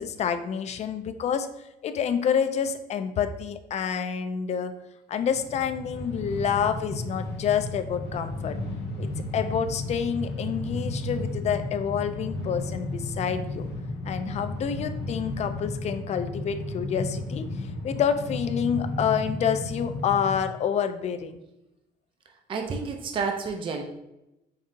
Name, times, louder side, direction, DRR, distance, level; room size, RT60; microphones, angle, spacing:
voice 1, 0.0-1.5 1.8-4.7 5.1-8.6 9.0-13.6 14.0-21.4, left 7 dB, 40° left, 10 dB, 0.4 m, -28 dB
Train, 5.2-20.4, left 2 dB, 75° left, 0.8 m, -33 dB
voice 2, 22.3-23.8, right 5 dB, 30° right, 3 dB, 0.4 m, -30 dB
5.2 x 2.6 x 2.5 m, 0.91 s
cardioid pair, 110°, 17 cm